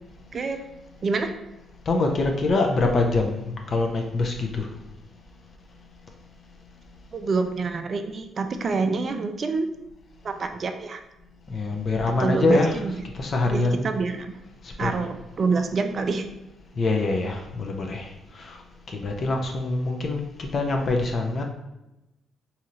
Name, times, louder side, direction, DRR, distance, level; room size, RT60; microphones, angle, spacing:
voice 1, 1.0-1.3 7.1-9.7 10.2-11.0 12.2-12.9 13.4-14.3 14.8-16.3, right 4 dB, 45° right, 7 dB, 0.4 m, -27 dB
voice 2, 1.9-3.3 3.7-4.7 11.5-12.8 13.2-13.9 14.8-14.9 16.8-18.1 18.4-18.6 18.9-21.4, left 2 dB, 50° left, 2 dB, 0.5 m, -24 dB
2.8 x 2.5 x 4.2 m, 0.92 s
cardioid pair, 90°, 0 cm